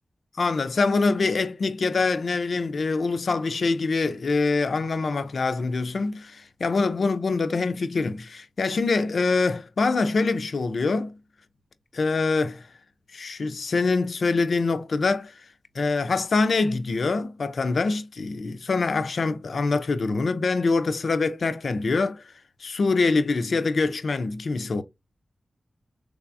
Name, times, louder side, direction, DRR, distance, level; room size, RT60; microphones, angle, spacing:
voice 1, 0.4-11.1 11.9-12.7 13.1-15.3 15.8-22.2 22.6-24.8, left 3 dB, 70° left, 0.4 m, -24 dB
3.4 x 3.3 x 2.4 m
cardioid pair, 45°, 0 cm